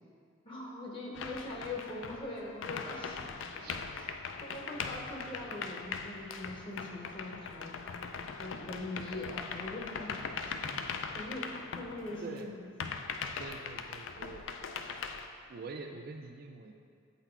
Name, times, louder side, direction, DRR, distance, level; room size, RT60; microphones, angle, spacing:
voice 1, 0.4-3.3 3.9-4.1 4.4-7.7 8.4-10.9 11.1-12.7 13.2-13.3, left 2 dB, 25° left, -2 dB, 0.7 m, -42 dB
sound 1, 1.1-12.4 12.8-15.3, left 5 dB, 65° left, 0.4 m, -40 dB
voice 2, 10.4-10.8 12.2-12.5 13.4-14.4 15.5-16.7, right 4 dB, 45° right, 4 dB, 0.4 m, -45 dB
8.1 x 4.1 x 4.4 m, 2.3 s
head